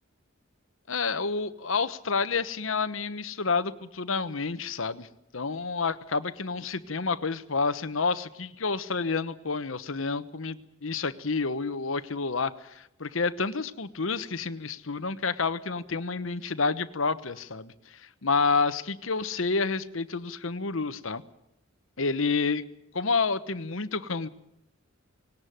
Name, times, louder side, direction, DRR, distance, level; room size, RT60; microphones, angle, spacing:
voice 1, 0.9-5.1 5.3-21.2 22.0-22.6 22.9-24.3, left 4 dB, 70° left, 13 dB, 1.1 m, -29 dB
19.5 x 18.0 x 9.3 m, 0.83 s
head